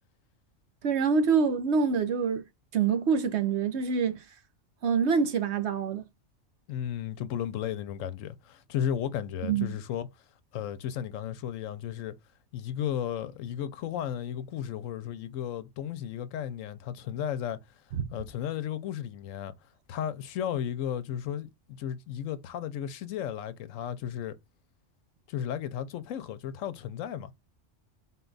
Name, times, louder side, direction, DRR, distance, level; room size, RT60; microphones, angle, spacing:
voice 1, 0.8-2.4 2.7-4.2 4.8-6.1 9.4-9.8 17.9-18.0, right 6 dB, 65° right, 1.0 m, -26 dB
voice 2, 6.7-10.1 10.5-12.1 12.5-17.6 18.1-19.5 19.9-24.4 25.3-27.3, left 10 dB, 85° left, 1.0 m, -34 dB
4.1 x 2.3 x 3.9 m
omnidirectional pair, 1.3 m